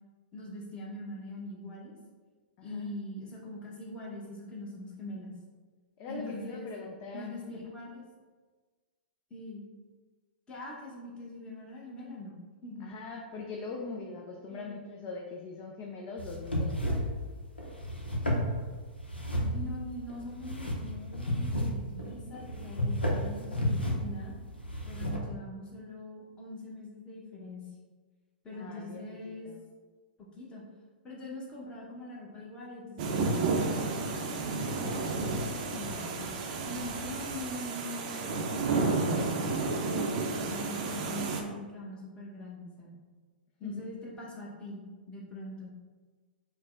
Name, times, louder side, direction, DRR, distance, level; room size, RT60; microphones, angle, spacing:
voice 1, 0.3-1.9 2.6-5.4 6.1-6.7 7.1-8.0 9.3-9.6 10.5-12.4 12.6-12.9 14.5-14.7 19.4-24.3 24.9-27.7 28.4-29.5 30.2-30.6 31.0-36.3 36.7-40.1 40.5-42.9 43.6-45.7, left 1 dB, 20° left, -4 dB, 0.9 m, -43 dB
voice 2, 2.6-2.9 6.0-7.7 12.8-17.2 28.5-29.7 43.6-43.8, left 4 dB, 35° left, 1 dB, 0.3 m, -42 dB
sound 1, 16.2-25.2, equal, 90° left, 0.7 m, -32 dB
sound 2, 33.0-41.4, right 3 dB, 45° right, 0.5 m, -31 dB
5.1 x 2.1 x 2.5 m, 1.4 s
figure-of-eight pair, 110°, 5 cm